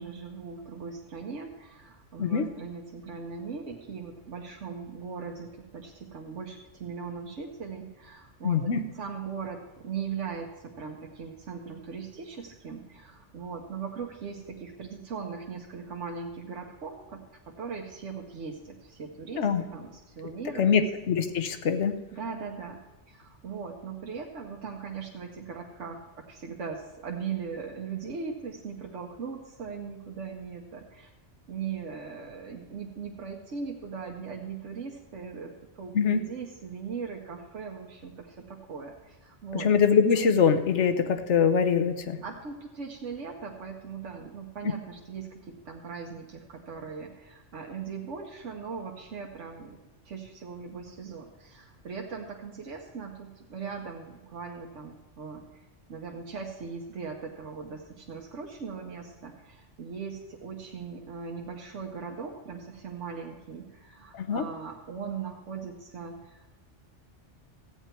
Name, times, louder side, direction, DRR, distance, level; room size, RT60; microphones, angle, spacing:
voice 1, 0.0-20.6 22.1-22.8 23.1-26.0 26.3-31.1 31.5-39.7 42.2-49.8 50.0-66.5, right 5 dB, 90° right, 0 dB, 1.4 m, -39 dB
voice 2, 8.4-8.8 19.4-19.6 20.6-22.0 35.9-36.2 39.5-42.2 64.1-64.4, left 6 dB, 80° left, 9 dB, 1.2 m, -23 dB
14.5 x 9.2 x 4.5 m, 1.2 s
omnidirectional pair, 1.2 m